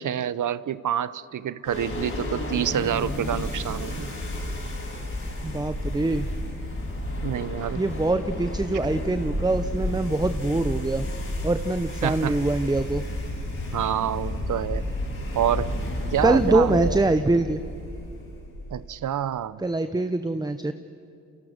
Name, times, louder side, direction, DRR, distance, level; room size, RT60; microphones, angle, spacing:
voice 1, 0.0-4.1 7.2-7.8 12.0-12.4 13.7-14.8 15.3-15.7 16.1-17.0 18.7-19.6, right 10 dB, 60° right, 17 dB, 0.7 m, -27 dB
sound 1, 1.6-19.0, left 1 dB, 35° left, 7.1 m, -31 dB
voice 2, 5.4-6.3 7.8-11.0 11.4-13.0 16.2-17.6 19.6-20.7, right 2 dB, 10° right, 10 dB, 0.7 m, -24 dB
29.0 x 24.0 x 6.5 m, 2.6 s
cardioid pair, 75°, 35 cm